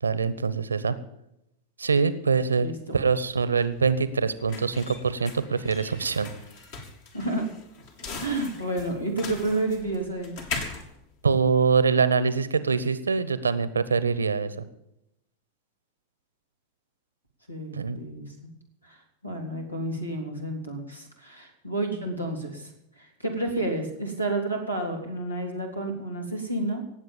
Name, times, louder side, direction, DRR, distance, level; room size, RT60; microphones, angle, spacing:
voice 1, 0.0-1.0 1.8-6.3 11.2-14.5 17.7-18.0, right 5 dB, 75° right, 15 dB, 1.0 m, -24 dB
voice 2, 2.6-3.0 6.1-6.3 7.1-7.5 8.2-10.4 17.5-18.5 18.8-19.0 19.2-22.7 23.0-26.8, right 2 dB, 85° left, 3 dB, 3.5 m, -30 dB
sound 1, 3.0-12.0, left 4 dB, 50° left, 3.0 m, -40 dB
18.5 x 7.9 x 7.1 m, 0.82 s
figure-of-eight pair, 90°, 0 cm